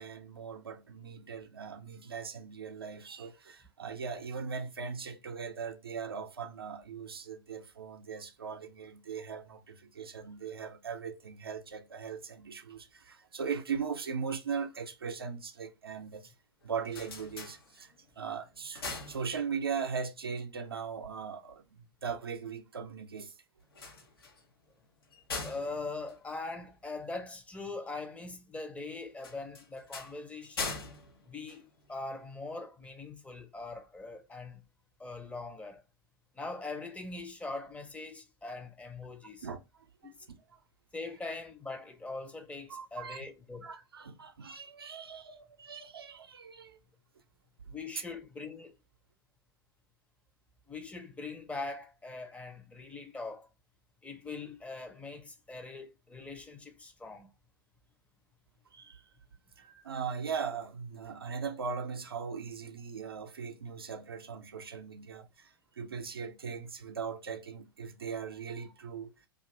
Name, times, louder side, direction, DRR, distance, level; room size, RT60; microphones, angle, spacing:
voice 1, 0.0-16.3 16.6-23.4 39.4-40.1 42.7-43.3 43.6-46.8 58.7-59.0 59.6-69.1, right 6 dB, 85° right, 0.5 m, -39 dB
sound 1, 16.6-18.1 18.5-19.8 23.6-27.1 29.2-32.2, left 3 dB, 80° left, 0.8 m, -43 dB
voice 2, 25.4-30.8 31.3-34.6 35.0-35.8 36.3-39.5 40.0-40.3 40.9-43.7 47.7-48.7 50.7-53.5 54.0-57.3, left 3 dB, 10° left, 0.5 m, -42 dB
2.5 x 2.4 x 3.1 m
figure-of-eight pair, 95°, 12 cm